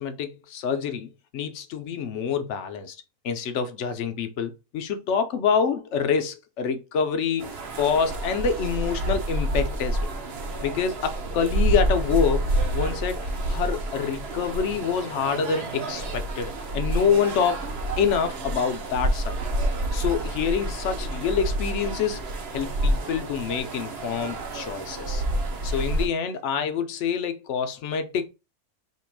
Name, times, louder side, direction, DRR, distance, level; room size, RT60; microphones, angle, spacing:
voice 1, 0.0-3.0 3.2-10.0 10.6-17.6 18.0-19.4 19.9-22.2 22.5-25.2 25.6-28.3, left 6 dB, 60° left, 0.8 m, -26 dB
sound 1, 7.4-26.1, right 1 dB, 50° right, 0.8 m, -28 dB
3.0 x 2.8 x 4.5 m
omnidirectional pair, 1.6 m